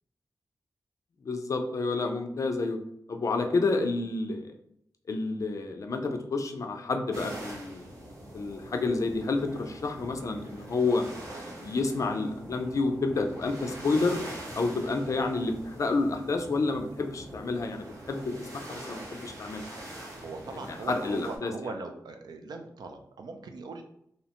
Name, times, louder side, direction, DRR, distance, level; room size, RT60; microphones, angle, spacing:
voice 1, 1.2-2.8 3.1-4.5 5.1-7.8 8.3-11.1 11.5-14.2 14.6-19.6 20.7-21.7, left 3 dB, 50° left, 5 dB, 0.4 m, -29 dB
sound 1, 7.1-21.4, right 1 dB, 50° right, 0.9 m, -43 dB
voice 2, 20.2-23.8, right 3 dB, 75° right, 5 dB, 0.3 m, -40 dB
2.7 x 2.1 x 2.8 m, 0.73 s
wide cardioid pair, 115°, 7 cm